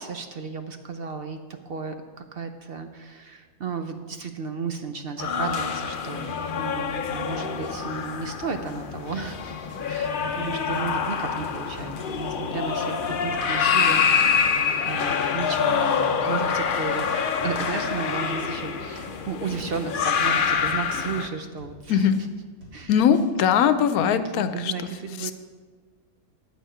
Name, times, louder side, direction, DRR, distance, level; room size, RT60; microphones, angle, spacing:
voice 1, 0.0-1.4 1.7-6.3 6.6-9.5 9.9-14.5 14.9-22.3 22.7-22.9 24.1-25.3, right 5 dB, 55° right, 7 dB, 0.7 m, -34 dB
sound 1, 5.2-21.3, left 6 dB, 55° left, 0.6 m, -26 dB
sound 2, 7.1-7.3 7.6-7.7 8.1-8.3 8.6-8.8 9.2-9.4 9.7-9.8 10.2-10.4 10.7-10.8 11.2-11.4 11.7-11.9 12.3-12.5 12.8-12.9 13.3-13.5 13.8-13.9 14.3-14.6 14.8-15.0 15.4-15.6 15.9-16.0 16.4-16.6 16.9-17.0 17.4-17.7 18.0-18.1 18.5-18.7 19.0-19.1 19.5-19.7 20.0-20.1 20.5-20.8 21.1-21.2 21.6-21.8 22.1-22.2 22.6-22.8 23.1-23.3, equal, 70° right, 2.9 m, -46 dB
voice 2, 22.9-24.7 25.2-25.3, left 8 dB, 90° left, 11 dB, 1.1 m, -21 dB
9.1 x 9.0 x 5.0 m, 1.5 s
omnidirectional pair, 1.5 m